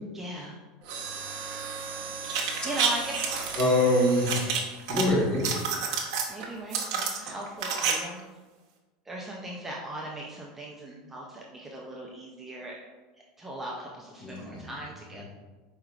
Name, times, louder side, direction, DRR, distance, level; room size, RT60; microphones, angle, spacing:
voice 1, 0.1-0.6 2.6-3.3 6.3-8.3 9.1-12.8 13.4-15.2, right 1 dB, 10° right, -3 dB, 0.4 m, -39 dB
Mechanisms, 0.8-5.8 6.4-6.6 7.3-7.6 7.9-8.0, right 4 dB, 55° right, 0.8 m, -38 dB
sound 1, 2.2-3.5 4.3-5.0 5.3-6.3 6.7-7.9 8.2-8.3, right 6 dB, 80° right, 0.6 m, -28 dB
voice 2, 3.6-4.6 4.9-5.5 14.2-14.7, left 1 dB, 30° left, -4 dB, 1.2 m, -24 dB
4.6 x 3.1 x 2.4 m, 1.2 s
supercardioid pair, 155°, 3 cm